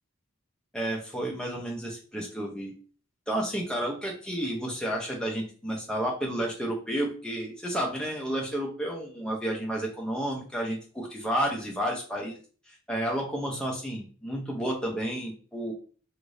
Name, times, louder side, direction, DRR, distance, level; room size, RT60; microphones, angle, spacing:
voice 1, 0.7-2.7 3.3-12.4 12.9-15.7, right 1 dB, 5° left, -1 dB, 0.6 m, -31 dB
2.6 x 2.6 x 3.1 m, 0.41 s
head